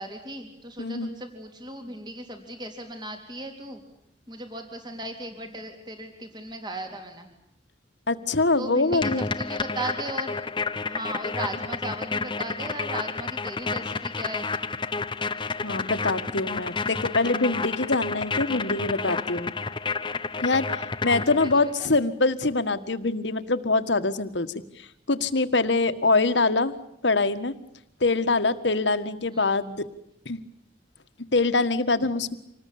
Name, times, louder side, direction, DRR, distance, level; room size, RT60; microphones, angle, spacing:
voice 1, 0.0-3.8 4.3-7.3 8.6-10.4 10.8-14.5 21.0-21.9 29.3-29.5, right 1 dB, 25° right, 5 dB, 3.8 m, -37 dB
voice 2, 0.8-1.1 8.1-9.3 15.6-19.5 20.4-24.5 25.1-26.7 27.0-27.6 28.0-29.8 30.3-30.4 31.3-32.3, left 3 dB, 75° left, 11 dB, 1.7 m, -24 dB
sound 1, 8.9-21.7, left 4 dB, 25° left, 0.9 m, -30 dB
27.0 x 20.0 x 8.7 m, 0.76 s
head